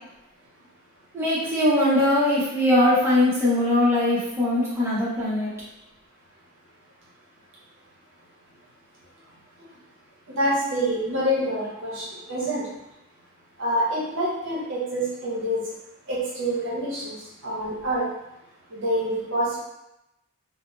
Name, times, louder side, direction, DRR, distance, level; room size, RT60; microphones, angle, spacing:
voice 1, 1.1-5.5, left 1 dB, 10° right, -10 dB, 0.7 m, -21 dB
voice 2, 10.3-12.7 13.6-15.6 16.1-17.2 17.4-18.1 18.7-19.6, equal, 60° right, -5 dB, 0.8 m, -26 dB
2.8 x 2.0 x 3.1 m, 0.87 s
head